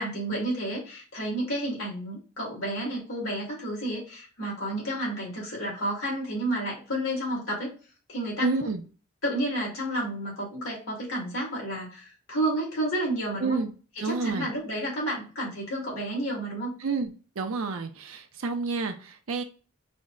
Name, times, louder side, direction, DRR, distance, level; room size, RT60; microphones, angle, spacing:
voice 1, 0.0-7.7 8.1-8.7 9.2-13.6 14.0-16.7, right 1 dB, 75° left, -3 dB, 2.0 m, -31 dB
voice 2, 8.4-8.8 13.4-13.7 14.0-14.5 16.8-19.4, right 3 dB, 70° right, 6 dB, 0.5 m, -29 dB
4.3 x 2.1 x 3.6 m, 0.35 s
head